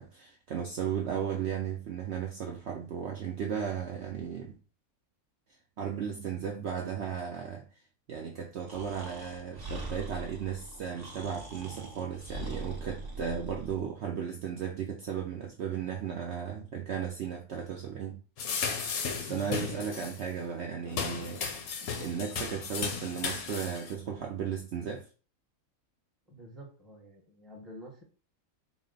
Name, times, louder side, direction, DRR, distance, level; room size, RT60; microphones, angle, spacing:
voice 1, 0.0-4.6 5.8-7.6 8.1-18.2 19.2-21.4 22.0-25.1, right 7 dB, 60° right, 0.7 m, -35 dB
Breathing, 8.7-13.8, right 2 dB, 25° right, 0.5 m, -42 dB
sound 1, 18.4-20.2 20.9-23.9, left 5 dB, 80° left, 1.2 m, -35 dB
voice 2, 19.2-19.5 26.3-28.0, right 1 dB, ahead, 0.8 m, -48 dB
4.1 x 2.1 x 3.8 m
omnidirectional pair, 1.5 m